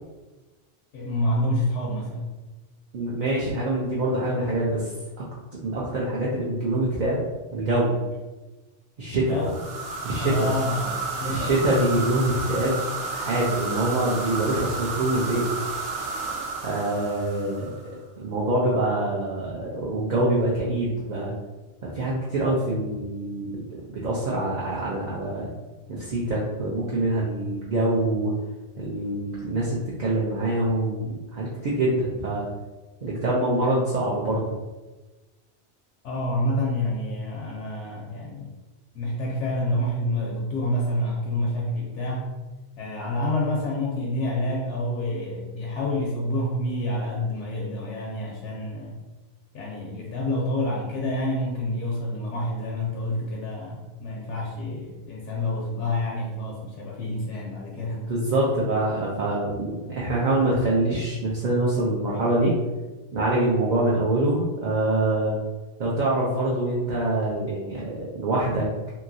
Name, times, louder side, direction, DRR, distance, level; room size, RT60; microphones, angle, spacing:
voice 1, 0.9-2.3 9.1-9.6 10.2-10.9 11.2-11.5 36.0-38.5 38.9-42.3 42.8-49.0 49.5-58.0, left 1 dB, 80° left, -2 dB, 0.9 m, -28 dB
voice 2, 2.9-4.9 5.6-7.2 7.5-8.0 9.0-9.4 10.0-10.5 11.3-12.8 13.1-15.4 16.6-17.7 18.2-21.3 21.8-25.5 25.9-28.3 28.8-32.5 33.0-34.5 57.9-62.5 63.1-65.4 65.8-68.7, right 1 dB, 55° right, -6 dB, 0.5 m, -25 dB
sound 1, 9.4-17.9, right 3 dB, 80° right, 1.1 m, -32 dB
2.9 x 2.7 x 2.6 m, 1.2 s
omnidirectional pair, 1.2 m